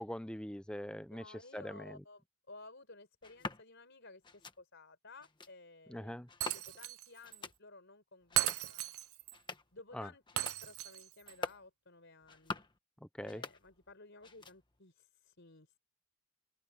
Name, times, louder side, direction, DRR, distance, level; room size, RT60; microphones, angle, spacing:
voice 1, 0.0-1.2 1.5-2.0 5.9-6.3 9.9-10.1 13.2-13.4, equal, 5° left, 0.7 m, -42 dB
voice 2, 1.1-8.9 9.7-12.7 13.2-15.8, left 3 dB, 55° left, 4.7 m, -56 dB
sound 1, 3.2-3.6 4.2-4.6 5.2-5.5 6.3-6.9 7.2-7.6 8.2-8.7 9.2-9.8 10.2-10.6 11.2-11.7 12.2-12.8 13.2-13.9 14.2-14.8, left 3 dB, 20° left, 1.4 m, -46 dB
Shatter, 6.4-7.1 7.3-7.4 8.4-9.3 10.4-11.3, right 14 dB, 75° right, 0.7 m, -36 dB
head